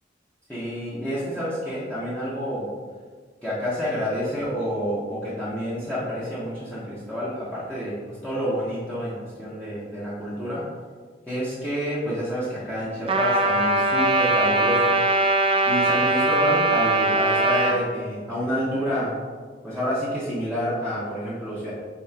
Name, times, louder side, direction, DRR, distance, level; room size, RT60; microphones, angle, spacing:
voice 1, 0.5-2.7 3.4-10.6 11.3-15.0 15.7-19.2 19.6-21.7, equal, 5° left, -11 dB, 1.2 m, -28 dB
Trumpet, 13.1-17.8, right 2 dB, 30° right, 0.4 m, -21 dB
7.1 x 4.5 x 2.9 m, 1.5 s
head